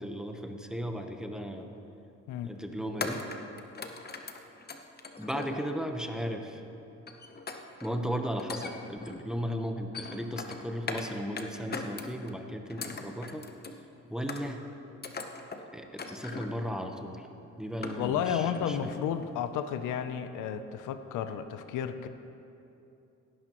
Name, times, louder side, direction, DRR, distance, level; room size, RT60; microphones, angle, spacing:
voice 1, 0.0-1.7 2.4-3.2 5.2-6.6 7.8-13.5 14.1-14.6 15.7-17.3 17.6-18.9, equal, ahead, 4 dB, 1.0 m, -36 dB
sound 1, 1.6-1.8 3.0-6.0 7.1-7.9 8.3-9.2 9.7-11.1 11.4-12.3 12.7-13.8 14.3-14.7 15.0-15.6 16.0-16.6 17.1-17.2 17.5-18.3 18.5-18.9 19.2-19.3, left 4 dB, 30° left, 0.9 m, -40 dB
voice 2, 18.0-22.1, left 8 dB, 90° left, 10 dB, 0.6 m, -32 dB
17.0 x 11.0 x 3.0 m, 2.8 s
cardioid pair, 90°, 30 cm